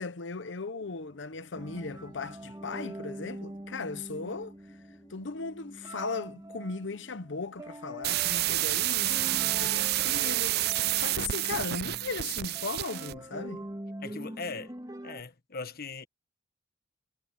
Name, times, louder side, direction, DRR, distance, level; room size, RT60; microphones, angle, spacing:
voice 1, 0.0-4.5 5.1-13.7, left 4 dB, 70° left, 0.8 m, -37 dB
sound 1, 0.8-13.8, equal, 20° left, 4.3 m, -60 dB
sound 2, 1.5-15.2, right 1 dB, 20° right, 2.0 m, -44 dB
sound 3, 8.0-13.2, right 16 dB, 55° right, 0.3 m, -29 dB
voice 2, 14.0-14.8 15.0-16.1, left 4 dB, 55° left, 1.4 m, -39 dB
head